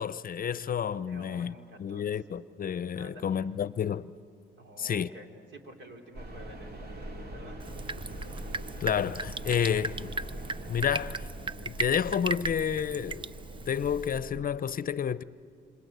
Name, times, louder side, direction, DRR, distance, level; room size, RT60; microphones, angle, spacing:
voice 1, 0.0-1.5 1.8-4.1 4.8-5.1 8.8-10.1 10.7-11.2 11.6-13.3 13.7-15.2, left 8 dB, 45° left, 0.6 m, -30 dB
voice 2, 1.0-2.1 2.9-3.4 4.6-6.8 7.3-7.6, equal, 70° right, 3.7 m, -49 dB
sound 1, 6.1-14.5, right 1 dB, 55° right, 3.3 m, -42 dB
Drip, 7.6-14.2, right 3 dB, 25° right, 0.6 m, -38 dB
28.0 x 25.5 x 8.1 m
cardioid pair, 90°, 20 cm